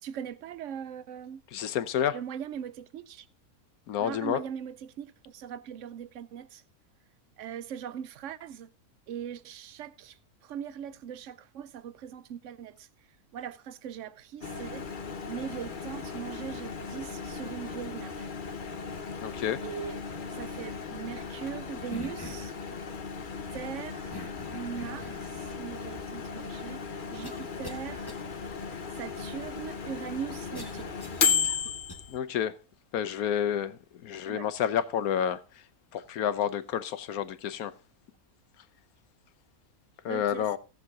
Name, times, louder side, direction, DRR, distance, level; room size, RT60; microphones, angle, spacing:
voice 1, 0.0-1.4 2.1-3.3 4.0-6.6 7.4-8.7 9.1-10.2 10.4-12.9 13.3-14.8 15.3-18.3 19.6-20.0 20.3-22.5 23.5-24.1 24.5-26.8 27.1-28.1 29.0-31.0 34.3-34.5 40.1-40.5, right 8 dB, 65° right, 0.9 m, -40 dB
voice 2, 1.5-2.2 3.9-4.4 19.2-19.6 32.1-32.5 32.9-35.4 35.9-37.7 40.0-40.6, left 9 dB, 75° left, 1.3 m, -29 dB
Microwave oven, 14.4-32.2, left 5 dB, 40° left, 0.9 m, -35 dB
sound 1, 21.9-22.6 24.1-25.3 26.1-26.2 27.2-27.8 28.1-28.2 30.5-32.0, left 1 dB, 15° left, 1.2 m, -43 dB
17.0 x 6.7 x 3.6 m
omnidirectional pair, 1.5 m